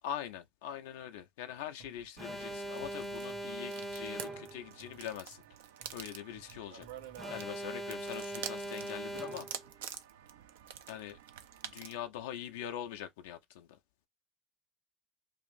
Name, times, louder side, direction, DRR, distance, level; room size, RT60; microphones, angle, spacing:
voice 1, 0.0-5.4 5.9-6.9 7.3-9.5 10.9-11.2 11.6-13.8, left 10 dB, 75° left, 0.4 m, -43 dB
sound 1, 1.8-9.7, right 5 dB, 60° right, 1.1 m, -60 dB
Alarm, 2.2-4.7 7.2-9.7, right 1 dB, 15° right, 0.5 m, -41 dB
sound 2, 2.2-12.0, right 9 dB, 75° right, 0.3 m, -48 dB
2.6 x 2.4 x 3.8 m
figure-of-eight pair, 55°, 0 cm